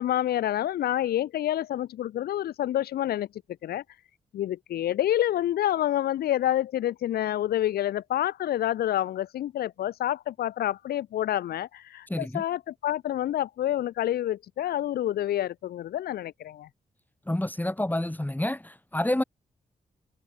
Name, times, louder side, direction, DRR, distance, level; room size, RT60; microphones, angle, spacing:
voice 1, 0.0-3.3 3.6-3.8 4.3-16.7, left 12 dB, 90° left, 1.2 m, -28 dB
voice 2, 12.1-12.4 17.3-19.2, left 1 dB, 10° left, 4.8 m, -28 dB
cardioid pair, 60°, 16 cm